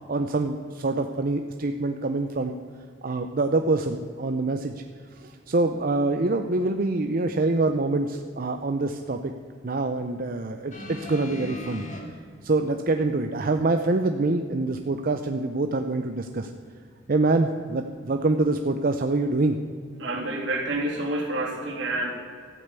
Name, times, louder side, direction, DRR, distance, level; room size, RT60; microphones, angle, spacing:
voice 1, 0.1-2.5 3.0-4.7 5.2-9.3 9.6-11.8 12.4-16.5 17.1-19.6, right 2 dB, 50° right, 6 dB, 0.6 m, -25 dB
sound 1, 10.7-12.0 13.0-13.1, left 2 dB, 40° left, 2.4 m, -38 dB
voice 2, 20.0-22.1, right 2 dB, 80° right, -1 dB, 2.9 m, -28 dB
13.5 x 8.9 x 8.2 m, 2.1 s
head